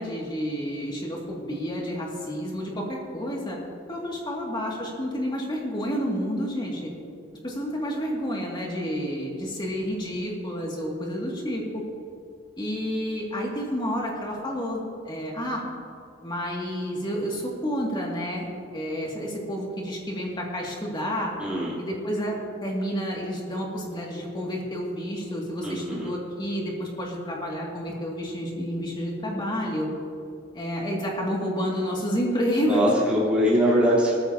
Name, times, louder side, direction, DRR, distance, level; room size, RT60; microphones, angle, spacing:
voice 1, 0.0-3.6 3.9-6.9 7.4-11.8 12.6-15.6 16.2-18.5 18.7-21.3 21.8-29.9 30.5-32.8, equal, 25° left, -2 dB, 2.3 m, -30 dB
voice 2, 21.4-21.7 25.6-26.1 32.7-34.1, equal, 5° right, -8 dB, 3.5 m, -22 dB
18.0 x 14.0 x 2.9 m, 2.4 s
head